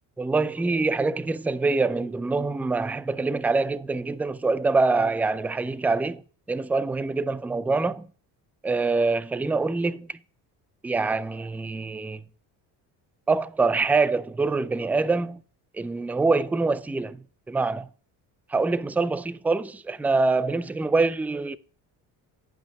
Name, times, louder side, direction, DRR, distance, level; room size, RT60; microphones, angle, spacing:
voice 1, 0.2-6.2 6.5-8.1 8.6-10.1 10.8-12.2 13.3-15.4 15.7-17.9 18.5-21.6, right 3 dB, 5° right, 0.3 m, -25 dB
10.0 x 5.8 x 5.2 m
supercardioid pair, 70°, 46 cm